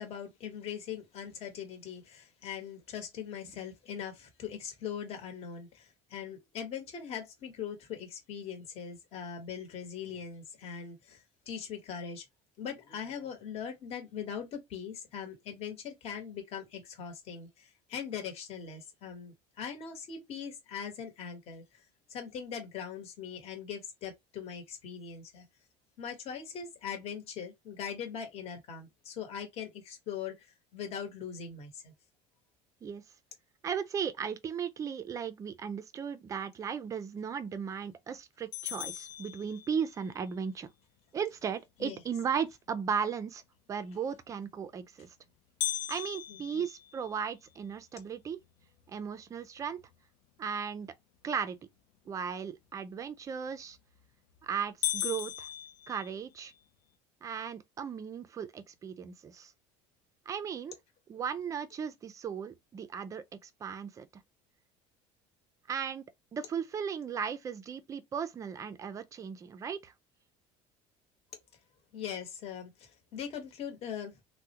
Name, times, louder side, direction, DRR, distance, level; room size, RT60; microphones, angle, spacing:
voice 1, 0.0-12.2 12.6-21.8 22.1-25.5 26.0-31.9 41.8-42.0 46.3-46.6 71.9-74.2, left 7 dB, 40° left, 1.0 m, -41 dB
voice 2, 33.6-40.7 41.1-43.4 43.7-45.1 45.9-48.4 48.9-49.8 50.4-50.9 51.2-51.6 52.1-53.8 54.4-55.5 55.9-56.5 57.2-59.5 60.3-60.7 61.1-64.1 65.7-66.1 66.3-69.9, right 7 dB, 20° right, 0.4 m, -36 dB
sound 1, 38.5-40.1 45.6-47.8 48.3-48.4 48.9-49.0 49.6-49.9 53.6-54.0 54.4-54.5 54.8-56.6, left 13 dB, 90° left, 0.5 m, -37 dB
3.6 x 2.1 x 2.8 m
cardioid pair, 160°, 15 cm